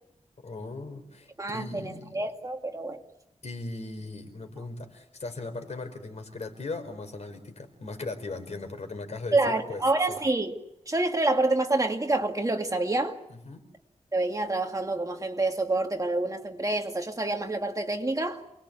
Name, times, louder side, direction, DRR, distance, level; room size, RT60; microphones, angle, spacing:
voice 1, 0.4-2.2 3.4-9.8 10.1-10.2 13.3-13.6, left 3 dB, 65° left, 4.8 m, -38 dB
voice 2, 1.4-3.0 9.3-10.5 10.9-13.2 14.1-18.4, right 2 dB, 30° right, 2.2 m, -27 dB
28.5 x 20.5 x 8.3 m
wide cardioid pair, 120°, 12 cm